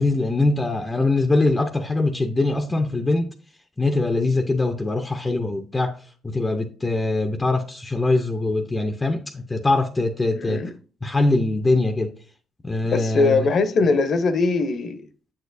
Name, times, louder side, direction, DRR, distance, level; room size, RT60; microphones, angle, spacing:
voice 1, 0.0-3.3 3.8-6.0 6.2-10.7 11.0-12.1 12.6-13.5, left 2 dB, 20° left, 0.6 m, -22 dB
voice 2, 10.3-10.7 12.8-15.0, left 3 dB, 60° left, 0.8 m, -21 dB
7.5 x 6.5 x 2.6 m
cardioid pair, 90°, 0 cm